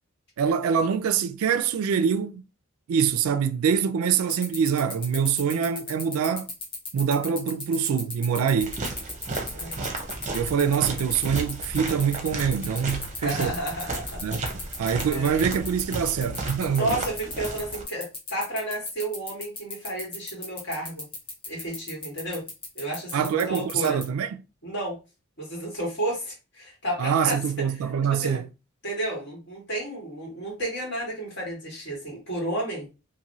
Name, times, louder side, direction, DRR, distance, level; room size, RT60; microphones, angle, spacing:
voice 1, 0.4-2.4 2.9-6.5 6.9-8.8 10.3-13.6 14.2-14.4 14.8-17.1 23.1-24.3 27.0-28.5, right 7 dB, 85° right, 0.3 m, -25 dB
sound 1, 4.2-24.0, left 3 dB, 25° left, 0.8 m, -35 dB
sound 2, 8.6-17.8, right 2 dB, 35° right, 0.6 m, -34 dB
voice 2, 13.2-14.2 15.1-15.3 16.7-21.1 21.5-22.5 22.8-24.0 24.6-25.0 25.4-27.4 28.1-28.4 28.8-32.9, right 1 dB, 55° left, 1.8 m, -32 dB
2.9 x 2.6 x 2.6 m
head